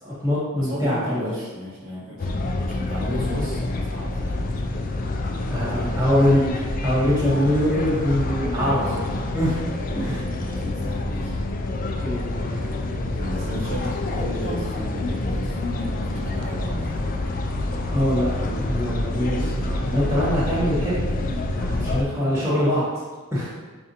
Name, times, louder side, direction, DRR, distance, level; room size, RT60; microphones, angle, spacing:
voice 1, 0.0-1.2 5.5-6.4 6.8-9.5 9.9-10.2 12.0-12.6 17.8-21.0 21.5-22.8 23.3-23.5, left 1 dB, 15° right, -9 dB, 1.4 m, -23 dB
voice 2, 0.6-4.7 5.7-5.9 8.6-9.4 10.4-11.3 13.1-17.2 21.6-22.7, equal, 70° right, -6 dB, 1.1 m, -34 dB
sound 1, 2.2-22.0, left 2 dB, 40° left, 0.3 m, -27 dB
5.4 x 2.5 x 2.8 m, 1.3 s
head